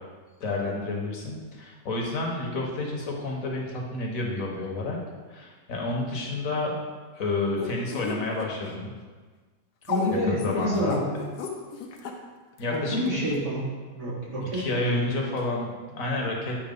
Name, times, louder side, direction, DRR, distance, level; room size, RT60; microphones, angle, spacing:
voice 1, 0.4-5.0 5.3-6.7 7.1-8.9 10.3-11.0 12.6-13.2 14.5-16.6, left 2 dB, 55° left, -1 dB, 1.4 m, -30 dB
sound 1, 7.6-8.7 9.8-12.1 12.6-12.7 13.3-13.4, left 5 dB, 75° left, 1.3 m, -33 dB
voice 2, 9.9-11.1 12.7-15.1, equal, 80° right, -7 dB, 2.7 m, -29 dB
8.8 x 2.9 x 5.2 m, 1.4 s
omnidirectional pair, 1.8 m